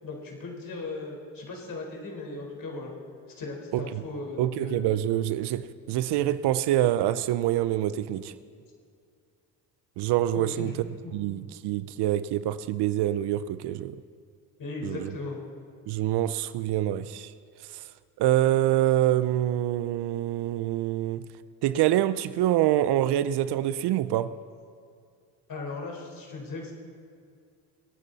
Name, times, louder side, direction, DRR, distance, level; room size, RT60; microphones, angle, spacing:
voice 1, 0.0-2.9 3.4-4.8 10.3-11.2 14.6-15.4 25.5-26.7, left 3 dB, 50° left, 4.4 m, -37 dB
voice 2, 3.7-4.0 4.4-8.3 10.0-10.7 11.1-14.0 14.8-15.1 15.9-17.3 17.7-17.8 18.2-21.3 21.6-24.4, right 13 dB, 65° right, 0.7 m, -26 dB
26.0 x 9.1 x 4.1 m
supercardioid pair, 75°, 43 cm